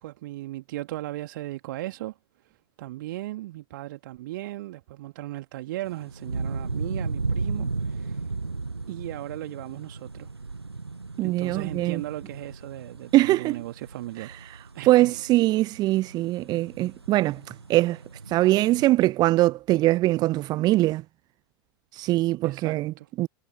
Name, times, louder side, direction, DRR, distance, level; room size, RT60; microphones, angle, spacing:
voice 1, 0.0-2.2 2.4-8.3 8.9-10.3 11.2-14.3 14.7-15.2 22.4-23.1, right 16 dB, 50° right, 1.8 m, -37 dB
sound 1, 5.8-18.9, right 3 dB, 85° right, 0.9 m, -35 dB
voice 2, 11.2-12.0 13.1-13.6 14.8-18.0 18.3-21.0 21.9-23.3, right 17 dB, 30° right, 0.8 m, -22 dB
figure-of-eight pair, 90°, 13 cm